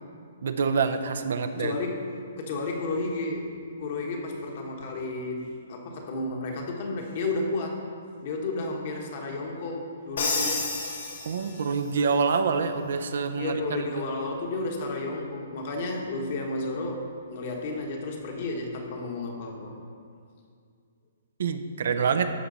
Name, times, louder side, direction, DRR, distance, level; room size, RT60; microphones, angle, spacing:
voice 1, 0.4-1.7 11.3-13.9 21.4-22.3, right 5 dB, 70° right, 8 dB, 0.6 m, -26 dB
voice 2, 1.5-2.1 2.4-3.5 3.8-7.8 8.2-10.7 13.4-19.7, left 2 dB, 45° left, 1 dB, 1.3 m, -32 dB
Crash cymbal, 10.2-11.9, left 3 dB, 75° left, 1.9 m, -30 dB
12.5 x 4.5 x 4.1 m, 2.2 s
hypercardioid pair, 155°, 0 cm